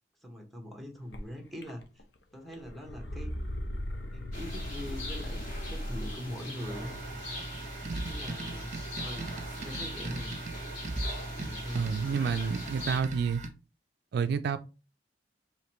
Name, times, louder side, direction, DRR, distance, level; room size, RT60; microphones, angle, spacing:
voice 1, 0.2-2.0 2.3-3.4 4.1-7.0 8.0-8.7 9.0-9.3 9.6-10.4 11.3-11.9, equal, ahead, 1.0 m, -42 dB
sound 1, 1.1-1.2 1.6-2.2 2.5-6.4, left 1 dB, 70° left, 0.7 m, -37 dB
sound 2, 4.3-13.0, left 1 dB, 45° left, 2.2 m, -42 dB
sound 3, 6.6-13.5, right 2 dB, 45° right, 0.7 m, -39 dB
voice 2, 11.7-13.4 14.1-14.6, right 6 dB, 65° right, 0.3 m, -29 dB
5.1 x 3.0 x 2.9 m
head